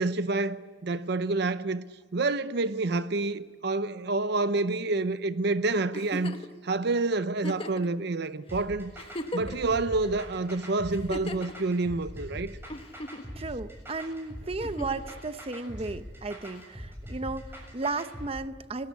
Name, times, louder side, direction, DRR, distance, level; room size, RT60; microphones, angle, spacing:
voice 1, 0.0-1.8 2.1-6.3 6.6-8.9 9.3-12.6, right 3 dB, 60° right, 0.7 m, -28 dB
Giggle, 5.9-6.5 7.4-7.9 8.5-8.6 9.0-9.7 10.9-11.5 12.7-13.4 14.6-15.1 16.6-16.7, left 1 dB, 30° left, 1.3 m, -37 dB
sound 1, 8.5-18.3, equal, 15° right, 7.3 m, -42 dB
voice 2, 13.4-18.9, right 3 dB, 30° right, 0.8 m, -34 dB
28.5 x 20.0 x 8.2 m
head